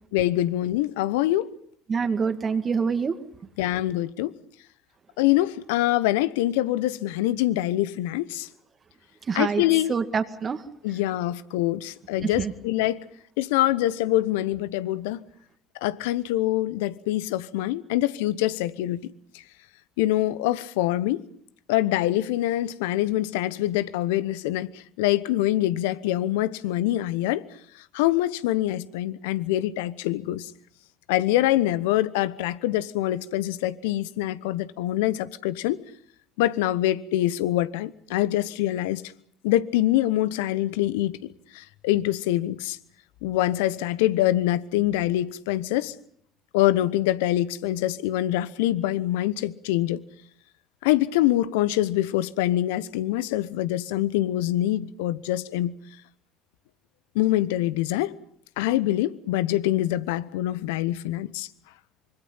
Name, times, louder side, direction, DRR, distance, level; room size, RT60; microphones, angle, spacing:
voice 1, 0.1-1.5 3.6-4.3 5.2-8.5 9.3-9.9 10.8-13.0 13.4-15.2 15.8-19.0 20.0-21.2 21.7-24.7 25.0-27.4 27.9-30.5 31.1-35.8 36.4-39.0 39.4-41.2 41.5-42.8 43.2-45.9 46.5-50.0 50.8-55.7 57.1-58.1 58.6-61.5, left 14 dB, 75° left, 1.0 m, -24 dB
voice 2, 1.9-3.2 9.3-9.6 9.9-10.6 12.2-12.5, right 5 dB, 35° right, 2.0 m, -26 dB
25.5 x 24.5 x 5.7 m
hypercardioid pair, 60°, 0 cm